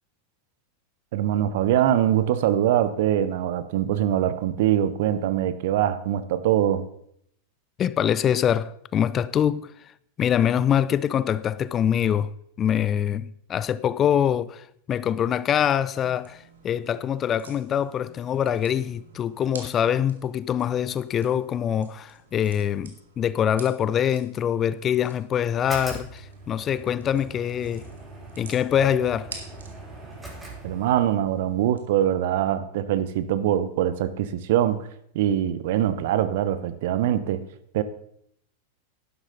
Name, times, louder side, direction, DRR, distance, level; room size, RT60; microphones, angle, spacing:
voice 1, 1.1-6.8 30.6-34.8 35.1-37.4 37.7-37.8, right 11 dB, 55° right, 0.9 m, -23 dB
voice 2, 7.8-9.7 10.2-12.3 12.6-27.9 28.4-29.3, left 9 dB, 30° left, 0.5 m, -24 dB
sound 1, 15.7-31.8, right 4 dB, 75° right, 2.1 m, -49 dB
sound 2, 25.5-31.2, right 2 dB, 10° right, 5.6 m, -41 dB
11.5 x 11.5 x 4.0 m
figure-of-eight pair, 90°, 0 cm